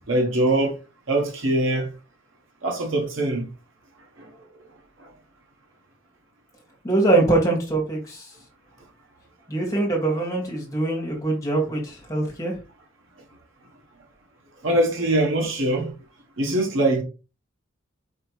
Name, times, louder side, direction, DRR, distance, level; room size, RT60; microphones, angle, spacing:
voice 1, 0.1-0.8 1.1-1.9 2.6-3.5 4.2-4.3 14.6-15.9 16.4-17.0, right 1 dB, 75° right, 1.1 m, -22 dB
voice 2, 6.8-8.3 9.5-12.6, right 2 dB, 15° left, 1.9 m, -23 dB
4.8 x 3.4 x 3.1 m
head